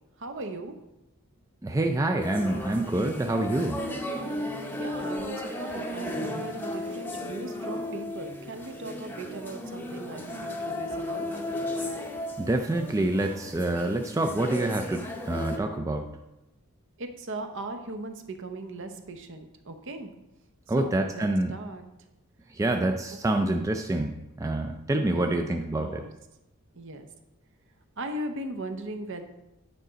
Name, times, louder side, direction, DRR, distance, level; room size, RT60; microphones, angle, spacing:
voice 1, 0.2-0.7 4.7-11.3 17.0-20.1 20.8-21.8 23.3-23.4 25.1-25.4 25.7-26.1 26.7-27.1 28.0-29.2, right 2 dB, 55° right, 7 dB, 0.7 m, -38 dB
voice 2, 1.6-3.8 12.4-16.1 20.7-21.5 22.6-24.1 24.4-25.9, right 2 dB, 15° right, 4 dB, 0.3 m, -27 dB
sound 1, 2.2-15.6, left 1 dB, 10° left, 0.7 m, -35 dB
9.0 x 5.0 x 3.9 m, 0.93 s
head